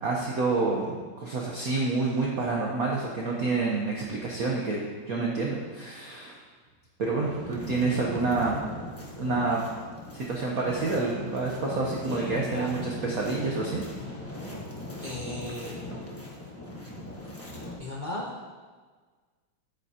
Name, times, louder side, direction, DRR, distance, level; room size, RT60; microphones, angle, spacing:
voice 1, 0.0-4.8 5.1-6.3 7.0-8.6 9.2-9.6 10.1-13.8, right 3 dB, 50° right, -3 dB, 1.2 m, -28 dB
sound 1, 7.2-17.7, left 1 dB, 10° left, 0.8 m, -39 dB
voice 2, 12.0-12.7 15.0-15.8 17.8-18.3, left 1 dB, 85° left, -3 dB, 0.4 m, -36 dB
10.5 x 8.9 x 2.9 m, 1.4 s
omnidirectional pair, 2.3 m